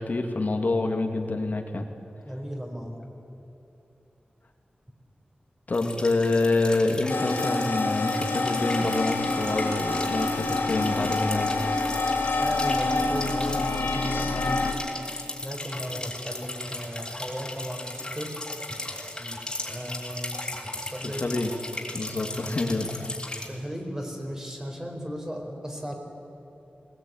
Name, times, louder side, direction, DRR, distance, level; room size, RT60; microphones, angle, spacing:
voice 1, 0.0-1.9 5.7-11.5 21.0-21.5 21.9-23.1, left 2 dB, 50° left, 4 dB, 2.0 m, -27 dB
voice 2, 2.2-3.0 12.4-14.6 15.4-18.3 19.2-19.4 19.7-21.4 22.1-22.4 23.5-25.9, equal, 15° right, 2 dB, 4.4 m, -36 dB
sound 1, 5.7-23.5, left 2 dB, 25° left, 3.5 m, -37 dB
sound 2, 7.1-14.7, left 2 dB, 90° left, 3.5 m, -27 dB
20.0 x 19.5 x 9.4 m, 2.9 s
wide cardioid pair, 105°, 3 cm